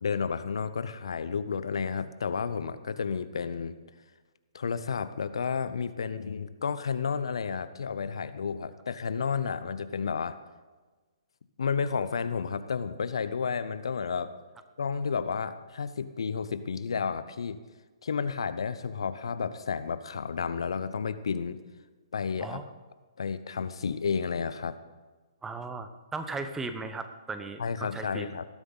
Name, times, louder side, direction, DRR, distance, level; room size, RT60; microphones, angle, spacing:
voice 1, 0.0-3.7 4.5-10.4 11.6-14.3 14.8-17.6 18.0-21.6 22.1-22.6 23.2-24.7 27.6-28.5, left 6 dB, 65° left, 13 dB, 0.8 m, -31 dB
voice 2, 25.4-28.3, right 3 dB, 10° right, 8 dB, 1.0 m, -37 dB
19.0 x 12.5 x 4.0 m, 1.3 s
figure-of-eight pair, 125°, 3 cm